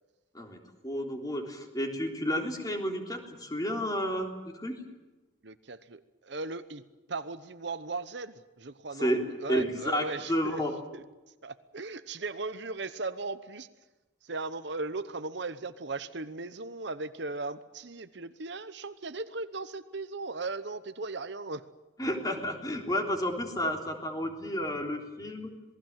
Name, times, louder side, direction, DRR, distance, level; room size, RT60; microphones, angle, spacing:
voice 1, 0.3-4.8 9.0-9.2 9.5-10.7 22.0-25.5, equal, 20° left, 2 dB, 3.6 m, -31 dB
voice 2, 5.4-6.8 7.1-10.6 10.9-11.0 11.4-13.7 14.2-21.6, right 3 dB, 60° right, 12 dB, 0.9 m, -37 dB
27.0 x 20.0 x 7.6 m, 1.1 s
head